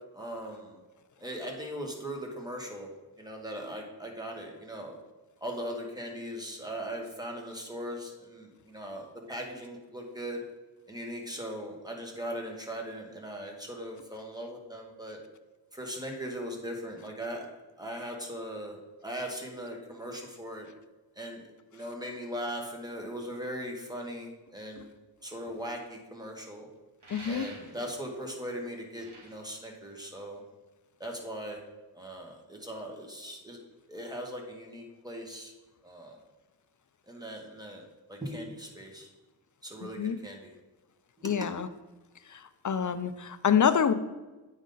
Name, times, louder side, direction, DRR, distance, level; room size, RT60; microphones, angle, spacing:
voice 1, 0.1-0.8 1.2-2.9 3.2-4.9 5.4-10.4 10.9-15.2 15.7-17.5 17.8-20.7 21.1-24.9 25.2-26.7 27.2-30.4 31.0-31.6 31.9-33.6 33.9-35.5 35.8-36.2 37.1-39.1 39.6-40.5 41.2-41.5, equal, 10° right, 1 dB, 1.3 m, -39 dB
sound 1, 27.0-28.0 28.8-30.5, right 2 dB, 65° right, 2.4 m, -49 dB
voice 2, 27.1-27.5 40.0-40.2 41.2-41.7 42.3-43.9, left 7 dB, 45° left, 12 dB, 0.5 m, -26 dB
8.3 x 5.3 x 3.8 m, 1.2 s
wide cardioid pair, 95°, 43 cm